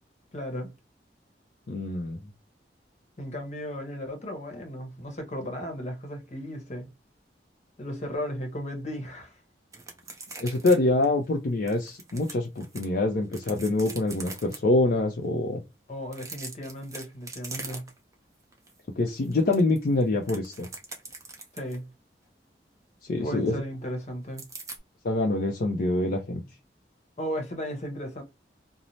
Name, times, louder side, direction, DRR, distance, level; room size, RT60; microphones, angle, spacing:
voice 1, 0.3-0.7 3.2-6.9 7.8-9.4 15.9-17.8 21.5-21.8 23.2-24.4 27.2-28.2, equal, 40° left, 0.8 m, -35 dB
voice 2, 1.7-2.2 10.4-15.6 19.0-20.7 23.1-23.5 25.0-26.4, left 2 dB, 55° left, 0.4 m, -25 dB
sound 1, 9.7-10.8 11.0-11.1 11.7-12.8 13.3-14.6 16.0-18.1 18.5-18.7 19.1-21.8 24.4-24.8, right 3 dB, 20° right, 0.6 m, -41 dB
3.0 x 2.0 x 2.5 m
head